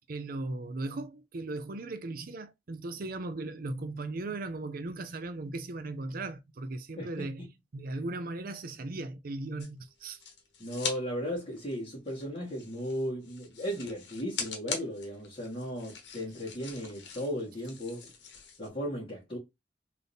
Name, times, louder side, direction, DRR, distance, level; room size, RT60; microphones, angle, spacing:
voice 1, 0.1-7.5 7.7-10.2, right 2 dB, 50° right, 0.5 m, -37 dB
voice 2, 7.0-7.3 10.6-18.1 18.6-19.4, equal, 30° left, 1.8 m, -36 dB
sound 1, 9.6-11.0 11.3-18.7, left 6 dB, 65° left, 1.1 m, -42 dB
3.9 x 2.8 x 3.4 m
head